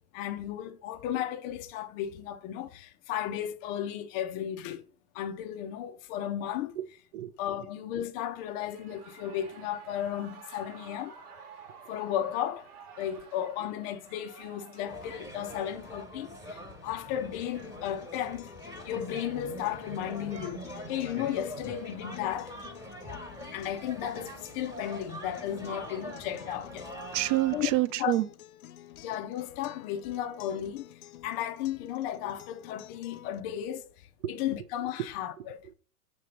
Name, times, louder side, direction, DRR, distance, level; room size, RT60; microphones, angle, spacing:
voice 1, 0.1-4.8 5.1-6.8 7.4-11.1 11.9-12.7 13.0-18.5 18.8-22.6 23.5-26.8 27.5-27.7 28.0-28.1 29.0-30.9 31.2-33.8 34.3-35.6, left 11 dB, 25° left, 0.3 m, -34 dB
Shout / Cheering, 8.3-17.3, right 6 dB, 75° right, 1.4 m, -51 dB
sound 1, 14.9-27.8, equal, 5° right, 1.2 m, -43 dB
Acoustic guitar, 17.4-33.4, left 13 dB, 70° left, 0.6 m, -51 dB
voice 2, 27.1-28.3 34.2-34.4 35.0-35.1 35.4-35.7, right 16 dB, 55° right, 0.6 m, -29 dB
6.5 x 3.4 x 5.1 m
hypercardioid pair, 105°, 45 cm